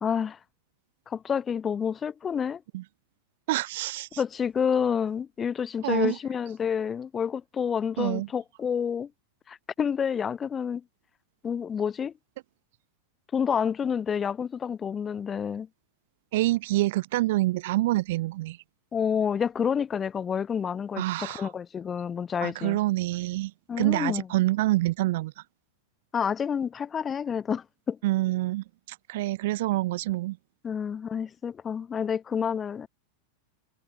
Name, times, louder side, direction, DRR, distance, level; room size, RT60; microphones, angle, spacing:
voice 1, 0.0-0.4 1.1-2.6 4.2-9.1 9.5-10.8 11.4-12.1 13.3-15.7 18.9-22.8 23.7-24.3 26.1-28.0 30.6-32.9, left 7 dB, 20° left, 1.3 m, -29 dB
voice 2, 3.5-4.1 5.8-6.2 8.0-8.3 16.3-18.6 21.0-21.5 22.4-23.5 23.8-25.3 28.0-28.6 29.1-30.4, right 18 dB, 55° right, 1.2 m, -26 dB
figure-of-eight pair, 90°, 0 cm